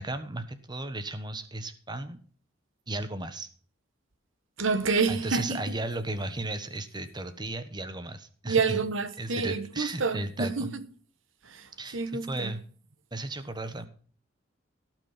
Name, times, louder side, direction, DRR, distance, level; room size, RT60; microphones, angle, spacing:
voice 1, 0.0-2.2 2.9-3.5 5.1-8.8 9.2-10.7 11.8-12.6 13.1-13.9, right 2 dB, 20° right, 1.2 m, -35 dB
voice 2, 4.6-5.6 8.5-10.8 11.4-12.5, right 4 dB, 70° right, 1.2 m, -28 dB
17.0 x 6.2 x 5.8 m
head